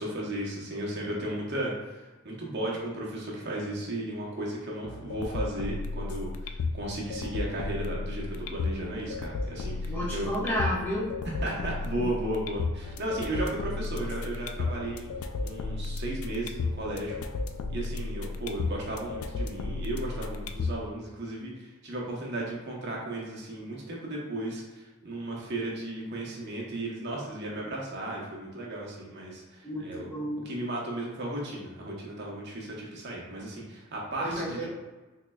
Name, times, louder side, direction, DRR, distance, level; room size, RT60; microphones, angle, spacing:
voice 1, 0.0-10.3 11.4-15.1 15.4-17.2 17.7-30.1 30.5-34.6, right 1 dB, 50° right, -3 dB, 0.8 m, -35 dB
sound 1, 4.8-20.8, left 3 dB, 85° left, 0.3 m, -34 dB
voice 2, 9.9-11.1 12.0-12.1 29.6-30.5 34.2-34.6, equal, 10° left, -8 dB, 0.9 m, -31 dB
3.9 x 3.0 x 2.3 m, 1.2 s
head